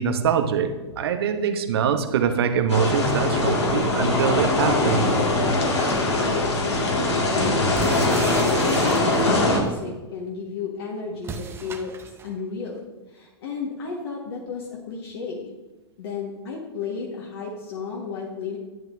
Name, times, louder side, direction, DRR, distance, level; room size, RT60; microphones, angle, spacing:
voice 1, 0.0-5.1, right 7 dB, 65° right, 8 dB, 1.0 m, -23 dB
sound 1, 2.7-9.6, left 2 dB, 80° left, 2.1 m, -22 dB
voice 2, 6.2-11.9 12.2-15.5 16.0-18.6, left 4 dB, 60° left, -2 dB, 1.6 m, -33 dB
sound 2, 7.7-9.5 11.2-12.3, right 5 dB, 15° right, 0.7 m, -36 dB
11.0 x 9.0 x 2.7 m, 1.1 s
figure-of-eight pair, 105°, 14 cm